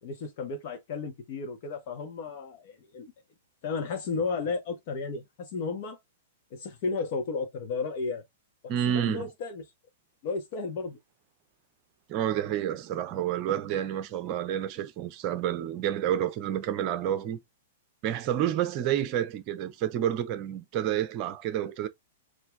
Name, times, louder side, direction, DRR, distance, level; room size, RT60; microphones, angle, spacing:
voice 1, 0.0-3.1 3.6-6.0 6.5-8.2 8.6-9.6 10.2-11.0, left 4 dB, 45° left, 1.6 m, -33 dB
voice 2, 8.7-9.2 12.1-17.4 18.0-21.9, right 10 dB, 35° right, 0.7 m, -29 dB
4.7 x 3.2 x 3.3 m
figure-of-eight pair, 105°, 0 cm